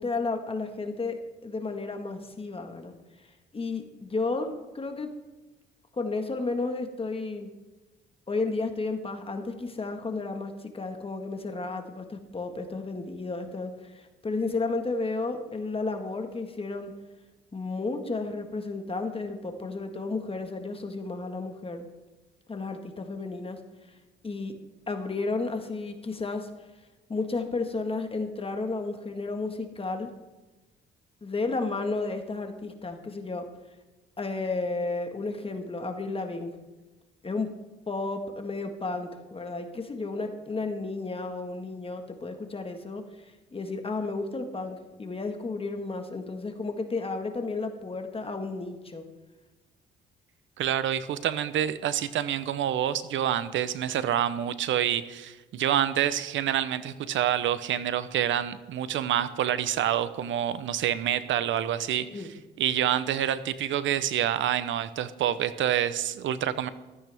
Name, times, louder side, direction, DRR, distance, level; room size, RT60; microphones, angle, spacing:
voice 1, 0.0-2.9 3.5-5.1 5.9-7.5 8.3-16.9 17.5-21.9 22.5-23.6 24.2-24.5 24.9-26.5 27.1-30.1 31.2-33.5 34.2-36.6 37.2-37.5 37.9-49.1 62.1-62.3, left 3 dB, 30° left, 5 dB, 1.6 m, -32 dB
voice 2, 50.6-62.3 62.6-66.7, right 10 dB, 75° right, 14 dB, 0.9 m, -27 dB
15.0 x 13.5 x 3.6 m, 1.1 s
cardioid pair, 90°, 20 cm